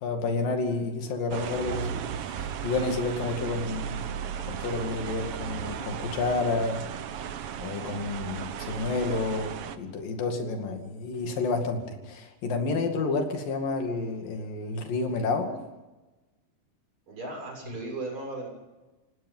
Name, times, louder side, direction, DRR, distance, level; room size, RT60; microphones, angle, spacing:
voice 1, 0.0-4.0 4.5-6.9 7.6-15.6, left 3 dB, 75° left, 4 dB, 4.1 m, -30 dB
sound 1, 1.3-9.8, right 8 dB, 75° right, 1.3 m, -35 dB
voice 2, 17.1-18.5, right 2 dB, 35° right, 0 dB, 7.9 m, -36 dB
28.5 x 17.5 x 5.6 m, 1.1 s
omnidirectional pair, 4.1 m